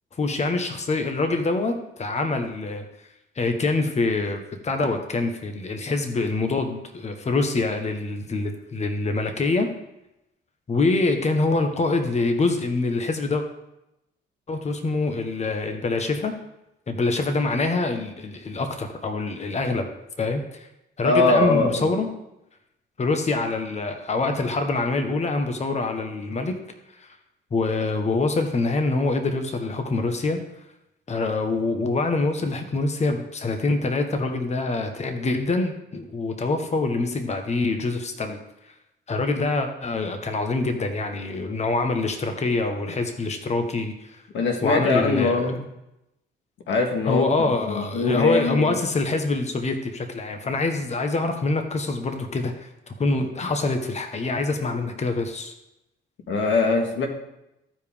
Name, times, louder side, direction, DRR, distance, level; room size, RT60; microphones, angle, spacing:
voice 1, 0.1-2.8 3.4-9.7 10.7-13.4 14.5-16.3 16.9-19.9 20.2-20.7 21.0-22.1 23.0-26.6 27.0-27.2 27.5-30.4 31.1-38.4 38.6-38.7 39.1-44.2 44.6-45.5 47.1-52.7 53.0-55.5, left 3 dB, 35° left, 5 dB, 1.2 m, -25 dB
voice 2, 21.0-21.9 44.3-45.6 46.7-48.7 56.3-57.1, left 3 dB, 70° left, 3 dB, 1.7 m, -22 dB
14.5 x 5.0 x 3.5 m, 0.88 s
cardioid pair, 90°, 20 cm